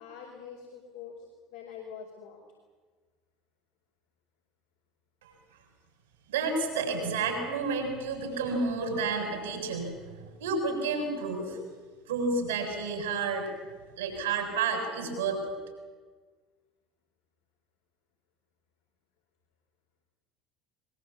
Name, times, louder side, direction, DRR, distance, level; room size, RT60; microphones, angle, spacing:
voice 1, 0.0-2.4, left 7 dB, 65° left, -1 dB, 5.1 m, -45 dB
voice 2, 6.3-11.6 12.1-13.5 14.0-15.5, right 4 dB, 75° right, 2 dB, 7.1 m, -30 dB
22.0 x 22.0 x 8.6 m, 1.4 s
figure-of-eight pair, 65°, 0 cm